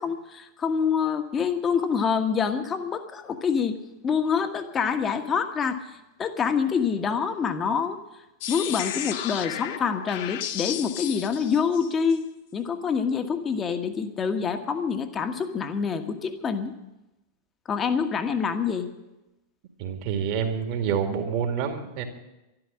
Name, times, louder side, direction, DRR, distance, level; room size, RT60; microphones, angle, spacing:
voice 1, 0.0-3.8 4.0-8.0 8.5-12.2 12.5-16.7 17.7-18.9, left 6 dB, 25° left, 7 dB, 1.4 m, -26 dB
sound 1, 8.4-12.2, left 11 dB, 50° left, 1.0 m, -33 dB
voice 2, 19.8-22.0, right 7 dB, 45° right, 5 dB, 2.2 m, -27 dB
12.5 x 12.0 x 8.5 m, 0.97 s
figure-of-eight pair, 90°, 0 cm